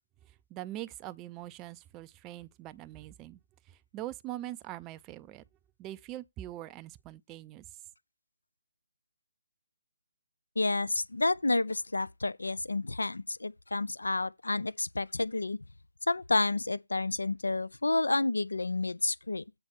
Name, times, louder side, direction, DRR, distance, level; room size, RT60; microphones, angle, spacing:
voice 1, 0.2-3.4 3.7-5.4 5.8-7.6, right 14 dB, 15° right, 0.4 m, -43 dB
voice 2, 10.6-15.6 16.1-19.4, left 2 dB, 75° left, 0.4 m, -30 dB
7.9 x 4.3 x 6.9 m
figure-of-eight pair, 145°, 0 cm